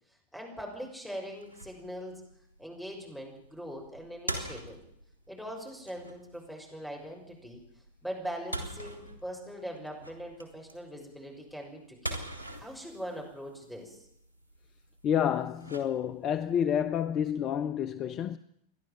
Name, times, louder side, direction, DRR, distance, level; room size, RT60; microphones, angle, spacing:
voice 1, 0.3-2.2 2.6-4.8 5.3-7.6 8.0-12.2 12.6-14.0, equal, ahead, 6.3 m, -41 dB
sound 1, 1.3-16.4, right 1 dB, 85° left, 3.1 m, -44 dB
voice 2, 15.0-18.4, left 9 dB, 30° left, 0.7 m, -29 dB
30.0 x 11.5 x 7.6 m
figure-of-eight pair, 90°, 0 cm